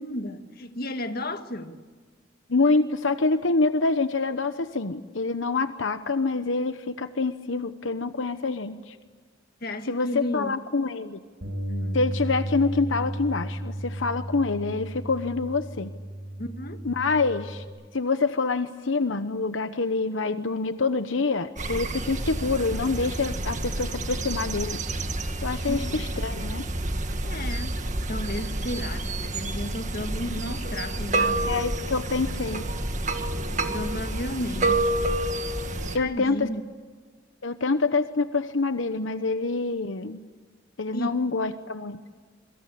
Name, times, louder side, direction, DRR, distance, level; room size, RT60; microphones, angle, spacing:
voice 1, 0.0-1.8 9.6-10.6 11.7-12.0 16.4-16.9 25.7-26.0 27.2-27.8 28.1-31.7 33.7-35.1 36.0-36.7 40.9-41.2, left 1 dB, 50° left, 1.7 m, -33 dB
voice 2, 2.5-9.0 9.9-11.2 11.9-15.9 16.8-17.6 17.9-24.8 25.4-26.6 31.5-32.7 35.9-36.5 37.4-40.2 40.8-42.0, left 3 dB, 80° left, 1.0 m, -26 dB
Bass guitar, 11.4-17.7, right 1 dB, 70° right, 6.7 m, -34 dB
sound 1, 21.6-36.0, right 2 dB, 40° right, 1.8 m, -29 dB
27.0 x 24.0 x 8.6 m
head